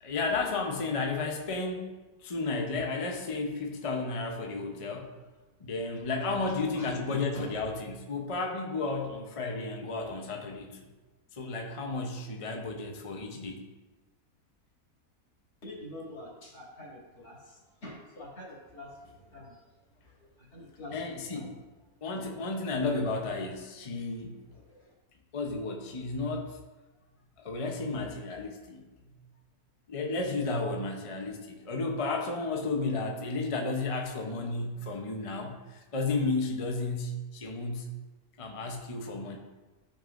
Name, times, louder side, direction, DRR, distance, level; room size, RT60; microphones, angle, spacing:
voice 1, 0.0-1.9 2.2-5.1 5.6-10.8 11.3-13.7 20.9-21.6 22.0-24.4 25.3-26.6 27.4-28.8 29.9-37.9 38.4-39.4, left 3 dB, 35° left, 2 dB, 0.6 m, -33 dB
voice 2, 6.5-7.7 15.6-19.6 20.0-21.0 21.3-21.5 24.5-24.9, left 1 dB, 70° left, -5 dB, 3.0 m, -45 dB
12.5 x 5.5 x 2.5 m, 1.2 s
omnidirectional pair, 1.6 m